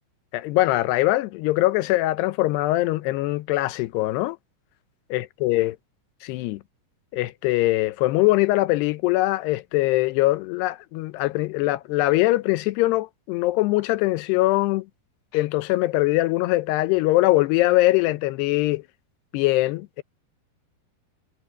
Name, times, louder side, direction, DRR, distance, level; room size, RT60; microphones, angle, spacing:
voice 1, 0.3-4.4 5.1-5.8 6.2-6.6 7.1-14.9 15.3-18.8 19.3-20.0, left 18 dB, 90° left, 2.9 m, -22 dB
omnidirectional pair, 4.6 m